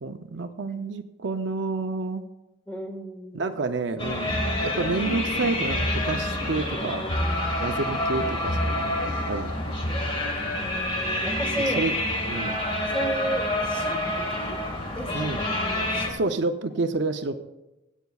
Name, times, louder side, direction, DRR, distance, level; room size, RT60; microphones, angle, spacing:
voice 1, 0.0-2.2 3.3-7.0 7.6-9.5 10.2-10.6 11.6-12.0 12.2-12.6 15.1-15.4 16.1-17.4, right 3 dB, 60° right, 7 dB, 0.5 m, -29 dB
voice 2, 2.7-3.5 11.2-12.0 12.9-14.6 14.9-15.4 15.7-16.2 16.7-16.8, right 1 dB, 5° left, 2 dB, 1.5 m, -34 dB
sound 1, 4.0-16.1, left 1 dB, 25° left, 1.3 m, -27 dB
22.0 x 8.1 x 2.4 m, 0.97 s
head